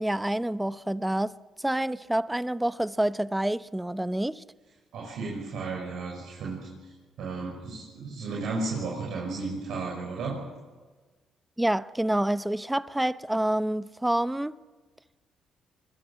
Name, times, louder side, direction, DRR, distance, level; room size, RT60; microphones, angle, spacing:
voice 1, 0.0-1.3 1.6-4.4 11.6-14.6, right 1 dB, 10° right, 0.8 m, -27 dB
voice 2, 4.9-6.6 7.2-10.4, right 3 dB, 75° right, 6.2 m, -33 dB
24.5 x 21.0 x 8.8 m
cardioid pair, 90°, 0 cm